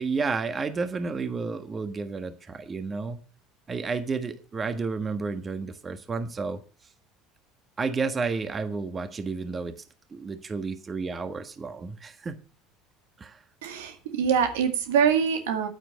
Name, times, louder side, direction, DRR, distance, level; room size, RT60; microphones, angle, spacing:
voice 1, 0.0-3.2 3.7-6.6 7.8-9.7 10.1-12.4 13.2-13.4, right 4 dB, 30° right, 10 dB, 1.4 m, -31 dB
voice 2, 13.6-15.7, right 7 dB, 85° right, 7 dB, 2.0 m, -24 dB
9.3 x 9.0 x 6.4 m, 0.36 s
supercardioid pair, 85°, 0 cm